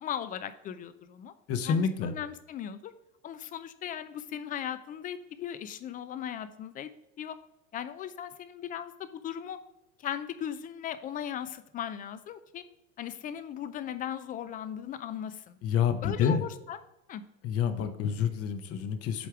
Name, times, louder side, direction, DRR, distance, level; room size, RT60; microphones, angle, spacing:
voice 1, 0.0-1.3 1.6-2.9 3.2-6.9 7.2-7.4 7.7-9.6 10.0-12.6 13.0-15.6 16.0-16.8 17.1-17.2, left 9 dB, 25° left, 13 dB, 0.3 m, -38 dB
voice 2, 1.5-2.1 15.6-16.4 17.4-19.3, left 7 dB, 40° left, 9 dB, 0.8 m, -28 dB
7.9 x 3.4 x 4.7 m, 0.90 s
supercardioid pair, 125°, 38 cm